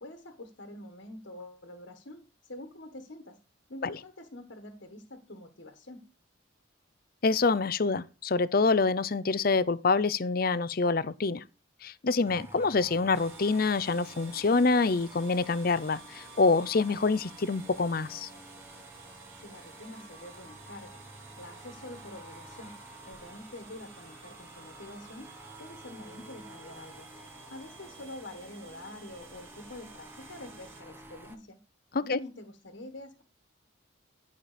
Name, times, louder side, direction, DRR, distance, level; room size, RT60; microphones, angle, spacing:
voice 1, 0.0-3.4 3.7-6.0 19.4-21.0 21.4-22.7 23.0-25.3 25.6-27.1 27.5-31.6 32.0-33.2, left 1 dB, 65° left, 1.5 m, -46 dB
voice 2, 7.2-11.4 11.8-18.3 31.9-32.2, left 4 dB, 45° left, 0.5 m, -26 dB
sound 1, 12.3-31.4, right 1 dB, 10° right, 1.3 m, -51 dB
sound 2, 13.1-30.8, right 5 dB, 85° right, 3.9 m, -52 dB
11.5 x 5.9 x 5.0 m
head